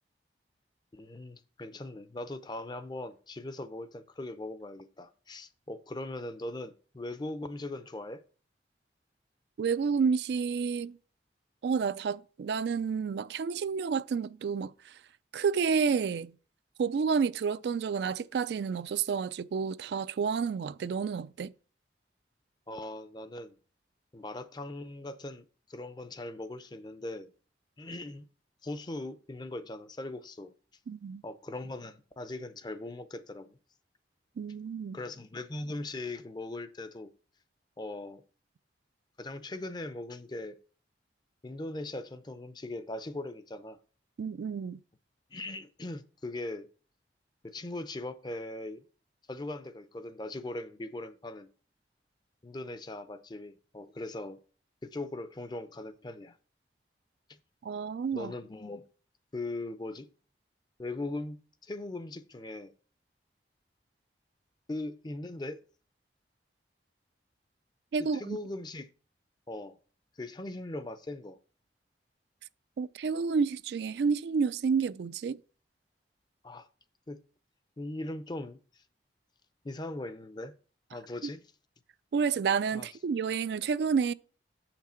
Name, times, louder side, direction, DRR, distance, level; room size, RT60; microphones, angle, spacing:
voice 1, 0.9-8.2 22.7-23.6 24.1-27.3 27.8-28.3 28.6-30.5 31.2-33.6 34.9-37.1 37.8-38.2 39.2-40.6 41.4-43.8 45.3-46.7 47.4-48.8 49.3-51.5 52.4-54.4 54.8-56.4 57.3-57.4 58.1-58.8 59.3-60.1 60.8-62.7 64.7-65.6 68.0-68.9 69.5-69.8 70.2-71.4 76.4-76.7 77.1-77.2 77.8-78.8 79.6-80.5 80.9-81.4 82.7-82.9, left 2 dB, 25° left, 0.5 m, -40 dB
voice 2, 9.6-11.0 11.6-14.9 15.3-16.3 16.8-21.5 30.9-31.2 34.4-35.0 44.2-44.8 57.6-58.3 67.9-68.4 72.8-75.4 82.1-84.1, right 5 dB, 70° right, 0.3 m, -30 dB
7.5 x 5.9 x 4.3 m
head